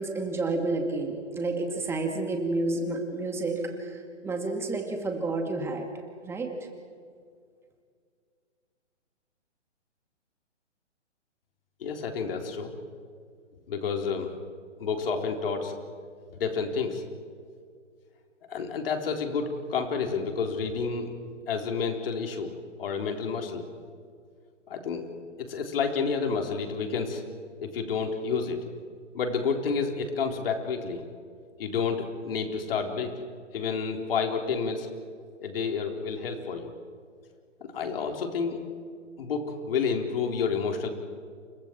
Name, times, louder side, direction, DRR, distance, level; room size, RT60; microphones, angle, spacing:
voice 1, 0.0-5.9 6.2-6.5, right 2 dB, 5° right, 3 dB, 2.3 m, -30 dB
voice 2, 11.8-12.7 13.7-14.3 14.8-15.8 16.4-17.0 18.5-21.1 21.5-22.5 22.8-23.6 24.7-25.1 25.4-27.2 27.6-28.6 29.1-31.0 31.6-33.1 33.5-34.9 35.4-36.7 37.7-38.6 39.2-40.9, left 5 dB, 50° left, 3 dB, 3.8 m, -29 dB
29.5 x 29.0 x 4.6 m, 2.2 s
hypercardioid pair, 145°, 37 cm